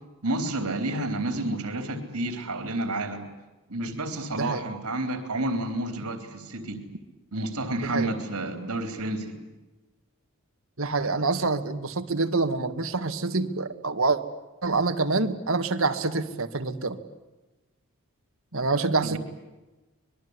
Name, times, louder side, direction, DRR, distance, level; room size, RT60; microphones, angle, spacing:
voice 1, 0.2-3.2 3.7-6.8 7.3-9.4 19.0-19.2, right 2 dB, 85° right, 6 dB, 3.8 m, -30 dB
voice 2, 7.8-8.1 10.8-14.2 14.6-17.0 18.5-19.2, right 3 dB, 65° right, 8 dB, 2.0 m, -26 dB
26.0 x 21.5 x 9.8 m, 1.1 s
head